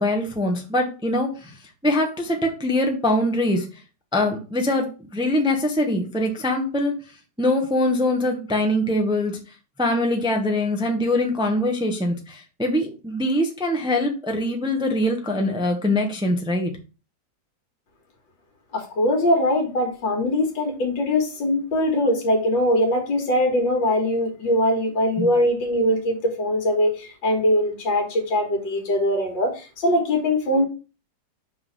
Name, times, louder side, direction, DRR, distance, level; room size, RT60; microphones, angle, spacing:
voice 1, 0.0-1.6 1.8-3.7 4.1-6.9 7.4-9.4 9.8-16.7 25.2-25.3, left 1 dB, 5° right, 3 dB, 0.8 m, -23 dB
voice 2, 18.7-30.7, left 1 dB, 80° left, 2 dB, 2.3 m, -22 dB
5.6 x 3.9 x 5.4 m, 0.32 s
omnidirectional pair, 2.0 m